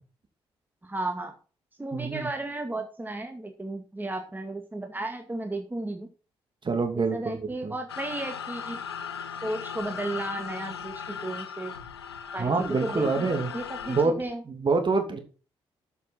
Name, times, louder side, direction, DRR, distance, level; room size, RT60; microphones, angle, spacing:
voice 1, 0.8-1.3 1.8-6.1 6.9-8.8 9.4-11.7 12.3-14.4, right 2 dB, 15° right, 4 dB, 2.2 m, -34 dB
voice 2, 1.9-2.3 6.6-7.7 12.4-13.5 13.9-14.2 14.5-15.2, right 4 dB, 40° right, 6 dB, 3.0 m, -26 dB
sound 1, 7.9-14.0, left 7 dB, 85° left, 0.7 m, -38 dB
13.0 x 6.9 x 4.4 m, 0.36 s
figure-of-eight pair, 40°, 13 cm